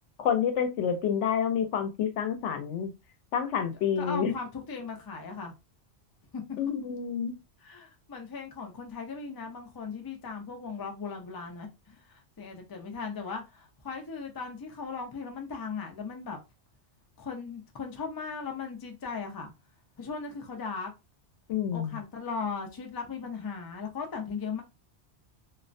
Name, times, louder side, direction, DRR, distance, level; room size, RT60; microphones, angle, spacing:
voice 1, 0.2-2.9 3.3-4.3 6.6-7.3 21.5-22.0, left 8 dB, 90° left, 0.9 m, -28 dB
voice 2, 4.0-5.5 6.3-6.4 7.6-16.4 17.2-19.5 20.0-20.9 21.7-24.6, left 5 dB, 35° left, 0.3 m, -38 dB
2.4 x 2.1 x 2.5 m
omnidirectional pair, 1.2 m